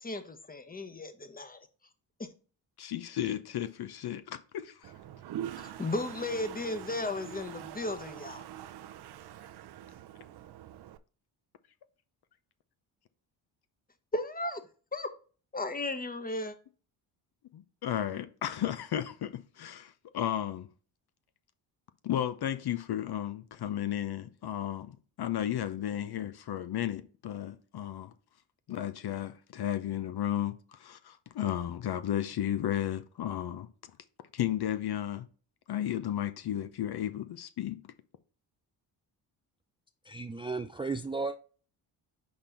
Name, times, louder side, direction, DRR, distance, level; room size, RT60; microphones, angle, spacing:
voice 1, 0.0-1.6 2.2-2.3 5.6-8.4 14.1-14.6 14.9-15.1 15.5-16.5, left 2 dB, 20° left, 1.1 m, -35 dB
voice 2, 2.8-4.9 17.5-20.7 22.0-28.1 28.7-33.7 34.3-35.3 35.7-37.8, left 11 dB, 50° left, 0.8 m, -34 dB
Toilet flush, 4.8-11.0, right 11 dB, 55° right, 0.7 m, -44 dB
voice 3, 40.1-41.4, right 3 dB, 10° right, 0.4 m, -34 dB
5.4 x 4.4 x 4.0 m
supercardioid pair, 55°, 48 cm